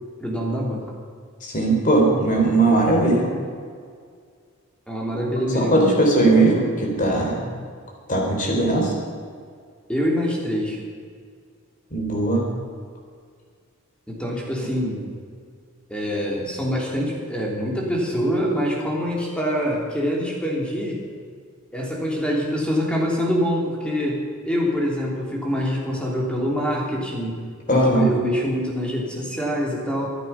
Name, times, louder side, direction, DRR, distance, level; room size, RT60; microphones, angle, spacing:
voice 1, 0.2-0.8 4.9-5.8 9.9-10.8 14.1-15.0 15.9-21.0 21.7-27.4 27.7-30.1, equal, 5° left, -2 dB, 3.2 m, -25 dB
voice 2, 1.4-3.3 5.5-7.4 8.1-8.9 11.9-12.4 27.7-28.1, right 2 dB, 35° left, 0 dB, 3.6 m, -19 dB
24.5 x 8.3 x 5.8 m, 2.1 s
head